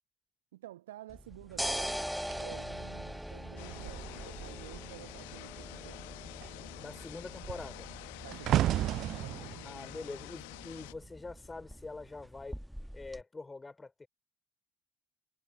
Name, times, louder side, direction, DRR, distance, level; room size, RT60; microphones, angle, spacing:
voice 1, 0.5-2.0 2.3-6.1 8.1-9.5, right 15 dB, 75° right, 1.2 m, -51 dB
sound 1, 1.1-13.2, equal, ahead, 1.3 m, -43 dB
sound 2, 2.2-5.0 5.3-5.6 5.9-11.3 12.0-12.3, right 13 dB, 55° right, 0.4 m, -35 dB
sound 3, 3.6-10.9, left 27 dB, 70° left, 1.2 m, -48 dB
voice 2, 6.8-7.9 9.6-12.6 12.9-14.1, left 3 dB, 20° left, 4.5 m, -44 dB
figure-of-eight pair, 50°, 0 cm